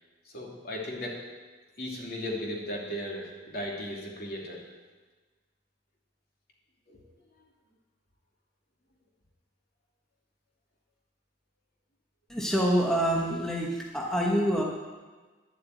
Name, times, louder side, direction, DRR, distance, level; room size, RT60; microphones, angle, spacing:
voice 1, 0.2-1.2 1.8-4.6 6.9-7.0, left 1 dB, 55° left, -3 dB, 2.9 m, -36 dB
voice 2, 12.3-14.6, equal, 5° left, -2 dB, 1.2 m, -26 dB
11.0 x 7.8 x 9.1 m, 1.4 s
head